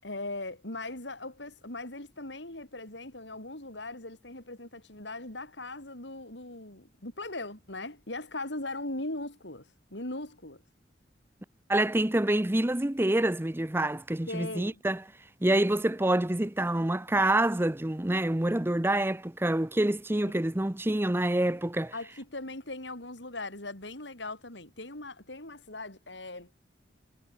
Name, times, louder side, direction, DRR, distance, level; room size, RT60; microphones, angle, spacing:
voice 1, 0.0-10.6 14.3-14.8 21.9-26.5, left 2 dB, 80° left, 7.3 m, -39 dB
voice 2, 11.7-15.0 15.4-21.9, right 1 dB, 15° right, 0.7 m, -27 dB
head